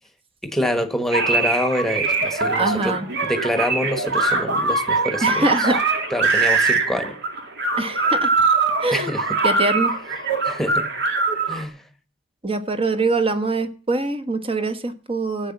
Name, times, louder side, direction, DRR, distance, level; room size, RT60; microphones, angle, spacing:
voice 1, 0.4-5.8 6.1-7.1 8.9-9.4 10.4-10.8 11.5-11.8, equal, ahead, 1.4 m, -26 dB
sound 1, 1.1-11.6, right 3 dB, 55° right, 2.1 m, -22 dB
voice 2, 2.5-3.1 5.2-5.8 7.8-8.3 8.8-9.1 9.4-9.9 12.4-15.5, right 3 dB, 25° right, 1.2 m, -23 dB
14.5 x 8.7 x 7.2 m
head